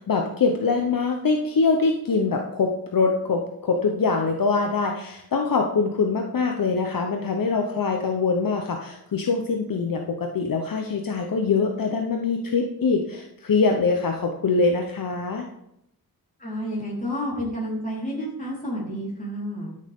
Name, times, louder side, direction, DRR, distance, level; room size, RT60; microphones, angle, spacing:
voice 1, 0.0-15.4, left 4 dB, 60° left, 2 dB, 0.9 m, -23 dB
voice 2, 16.4-19.8, equal, 20° left, -6 dB, 4.1 m, -30 dB
12.5 x 6.5 x 3.6 m, 0.77 s
wide cardioid pair, 135°, 37 cm